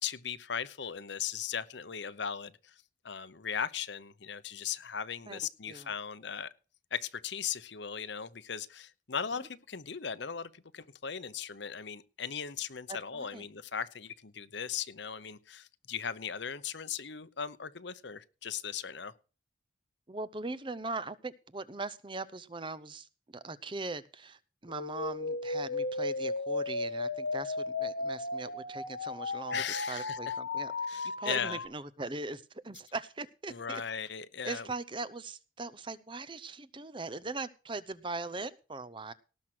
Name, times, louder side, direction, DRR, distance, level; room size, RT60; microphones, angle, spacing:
voice 1, 0.0-6.5 6.9-19.1 29.5-30.3 30.9-31.6 33.5-34.7, left 7 dB, 65° left, 0.9 m, -38 dB
voice 2, 12.9-13.4 20.1-30.9 31.2-33.8 34.4-39.1, right 3 dB, 25° right, 0.7 m, -40 dB
sound 1, 24.7-31.7, left 3 dB, 80° left, 1.7 m, -35 dB
18.0 x 6.3 x 6.1 m
head